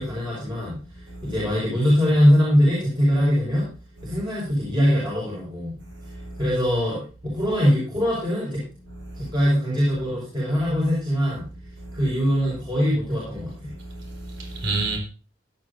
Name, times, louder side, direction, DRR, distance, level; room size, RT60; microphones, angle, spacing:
voice 1, 0.0-3.7 4.0-5.7 6.4-8.7 9.1-11.5 11.9-13.7, equal, 25° right, 5.4 m, -22 dB
voice 2, 14.1-15.0, right 3 dB, 60° right, 4.7 m, -29 dB
16.0 x 11.5 x 2.8 m
head